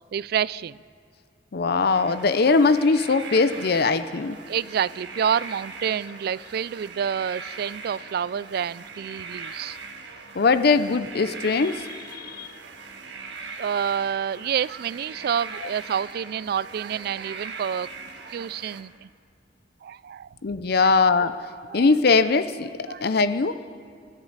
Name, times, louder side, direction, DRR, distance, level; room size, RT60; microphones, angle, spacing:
voice 1, 0.1-0.8 4.5-9.8 13.6-17.9 18.3-19.1 19.8-20.3 20.8-20.9 21.7-21.9 22.9-23.1, right 8 dB, 60° right, 21 dB, 0.3 m, -28 dB
voice 2, 1.5-4.4 10.4-12.5 20.4-21.3 21.7-22.7 23.0-23.6, left 4 dB, 60° left, 12 dB, 0.6 m, -21 dB
sound 1, 1.9-18.8, right 4 dB, 80° right, 1.4 m, -40 dB
25.0 x 11.5 x 4.0 m, 2.4 s
head